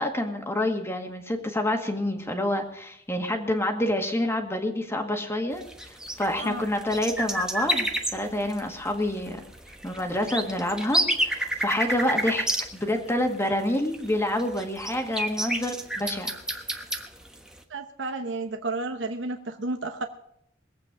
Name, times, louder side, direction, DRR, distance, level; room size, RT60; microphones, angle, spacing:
voice 1, 0.0-9.4 9.8-12.5 12.7-16.3, left 1 dB, 15° left, 3 dB, 1.9 m, -28 dB
sound 1, 5.5-17.6, right 1 dB, 5° right, 1.2 m, -30 dB
voice 2, 17.7-20.1, right 2 dB, 70° right, 5 dB, 1.0 m, -32 dB
21.5 x 8.5 x 4.9 m, 0.75 s
head